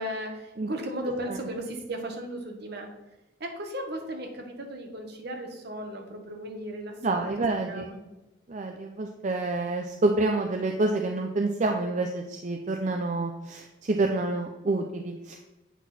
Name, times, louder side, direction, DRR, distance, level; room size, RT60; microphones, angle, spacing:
voice 1, 0.0-2.9 3.4-7.3 7.6-8.0, right 1 dB, 60° right, 3 dB, 1.4 m, -36 dB
voice 2, 7.0-7.9 8.5-15.5, right 2 dB, 40° right, 4 dB, 0.5 m, -28 dB
8.1 x 6.0 x 4.2 m, 1.0 s
head